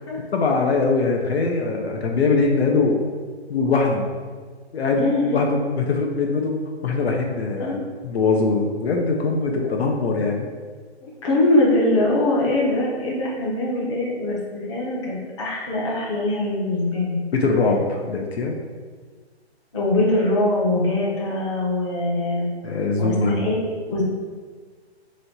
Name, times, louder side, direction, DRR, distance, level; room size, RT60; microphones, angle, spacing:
voice 1, 0.2-3.0 3.5-4.1 4.7-10.5 17.3-18.6 22.6-23.4, left 4 dB, 70° left, 1 dB, 0.6 m, -22 dB
voice 2, 4.9-5.5 7.6-7.9 9.5-9.8 11.0-17.2 19.7-22.5 23.0-24.0, left 2 dB, 25° left, -5 dB, 0.8 m, -22 dB
3.1 x 2.8 x 4.1 m, 1.6 s
hypercardioid pair, 165°, 33 cm